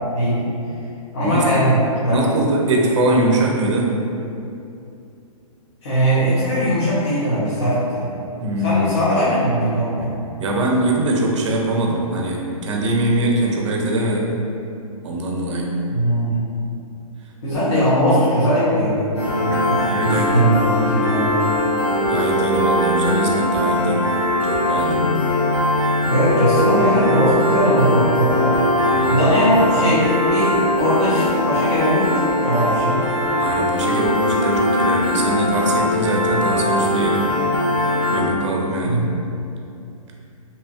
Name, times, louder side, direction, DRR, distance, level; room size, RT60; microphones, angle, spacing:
voice 1, 1.1-1.8 2.1-2.2 5.8-8.1 8.6-10.1 15.9-16.4 17.4-21.3 26.0-28.6 29.1-33.0 38.8-39.1, equal, 50° left, -12 dB, 0.8 m, -19 dB
voice 2, 2.1-4.0 8.4-9.0 10.4-14.3 15.0-15.8 19.5-20.4 22.0-24.0 24.4-25.0 28.8-29.2 33.3-37.3 38.1-39.1, right 1 dB, 55° right, -1 dB, 0.5 m, -22 dB
Piano, 19.2-38.2, left 1 dB, 20° left, 0.4 m, -20 dB
2.8 x 2.2 x 2.6 m, 2.6 s
hypercardioid pair, 160°, 19 cm